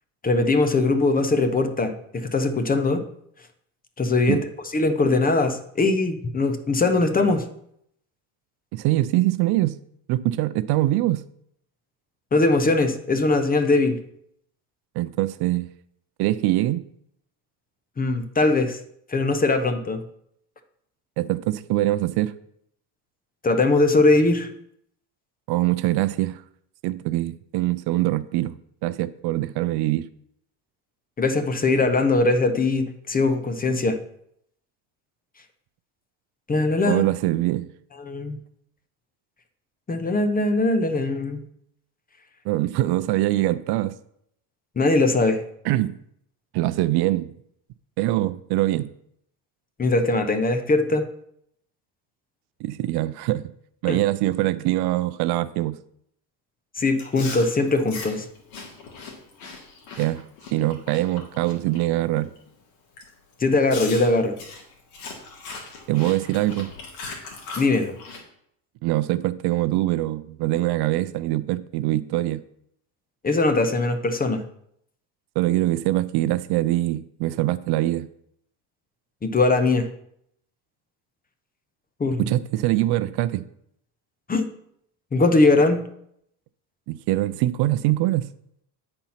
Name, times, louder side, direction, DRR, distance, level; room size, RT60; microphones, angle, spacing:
voice 1, 0.2-3.0 4.0-4.4 4.7-7.4 12.3-14.0 18.0-18.8 19.1-20.0 23.4-24.5 31.2-34.0 36.5-37.0 38.0-38.4 39.9-41.4 44.8-45.4 49.8-51.1 53.9-54.0 56.8-58.3 63.4-64.3 67.6-68.0 73.2-74.4 79.2-79.9 82.0-82.2 84.3-84.5 85.1-85.9, left 3 dB, 20° left, 0.9 m, -21 dB
voice 2, 8.7-9.8 10.1-11.2 15.0-15.7 16.2-16.8 21.2-22.3 25.5-26.4 26.8-28.5 28.8-30.1 36.9-37.7 42.5-43.9 45.6-45.9 46.5-47.3 48.0-48.9 52.6-53.5 53.8-55.8 60.0-62.3 65.9-66.7 68.8-72.4 75.4-78.1 82.2-83.4 86.9-88.3, right 16 dB, 65° right, 0.5 m, -23 dB
Chewing mastication, 56.9-61.8 62.2-62.5 63.0-63.1 63.7-68.2, left 4 dB, 90° left, 2.0 m, -39 dB
8.9 x 4.4 x 5.7 m
cardioid pair, 105°, 42 cm